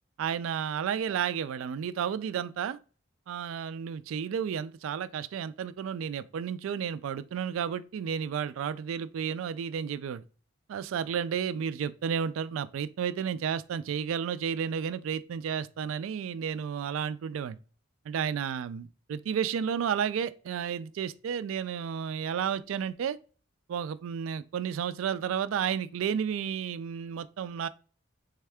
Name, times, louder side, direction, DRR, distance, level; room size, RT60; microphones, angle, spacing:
voice 1, 0.2-2.8 3.3-10.2 10.7-17.6 18.1-23.2 23.7-27.7, right 7 dB, 80° right, 0.3 m, -32 dB
3.5 x 3.3 x 3.4 m
head